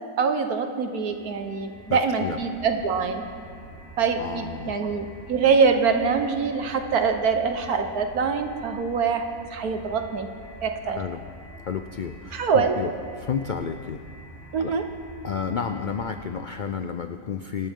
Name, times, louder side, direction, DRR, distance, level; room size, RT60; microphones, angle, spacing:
voice 1, 0.2-3.2 4.0-9.2 9.5-10.3 10.6-11.0 12.3-12.7 14.5-14.8, right 5 dB, 85° right, 6 dB, 1.7 m, -24 dB
sound 1, 0.8-17.0, left 1 dB, 40° left, 2.7 m, -45 dB
voice 2, 1.9-2.4 4.2-4.8 10.9-11.2 11.6-14.0 14.6-14.8 15.2-17.7, left 6 dB, 70° left, 8 dB, 0.4 m, -31 dB
26.0 x 12.0 x 3.7 m, 2.3 s
omnidirectional pair, 1.5 m